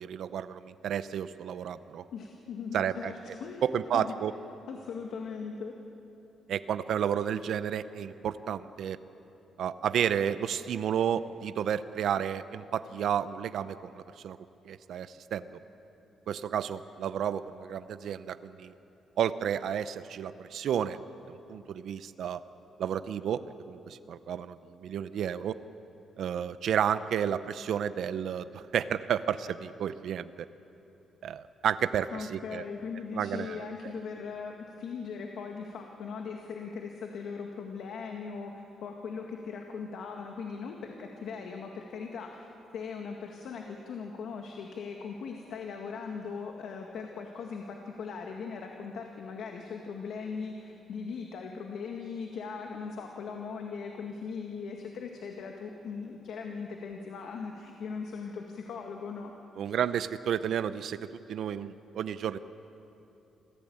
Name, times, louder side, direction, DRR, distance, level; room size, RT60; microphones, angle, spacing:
voice 1, 0.0-2.0 2.7-3.1 3.6-4.3 6.5-9.0 9.6-14.4 14.7-15.4 16.3-18.7 19.2-21.0 21.3-22.4 22.8-23.4 23.7-24.6 24.8-25.5 26.2-30.5 31.2-32.6 33.1-33.6 59.6-61.0 61.3-62.4, right 9 dB, 65° right, 12 dB, 0.7 m, -31 dB
voice 2, 2.1-3.6 3.9-4.2 4.7-5.7 32.1-42.5 42.7-59.3 59.7-59.8, left 5 dB, 70° left, 2 dB, 2.0 m, -39 dB
27.0 x 16.5 x 8.8 m, 2.9 s
cardioid pair, 140°, 0 cm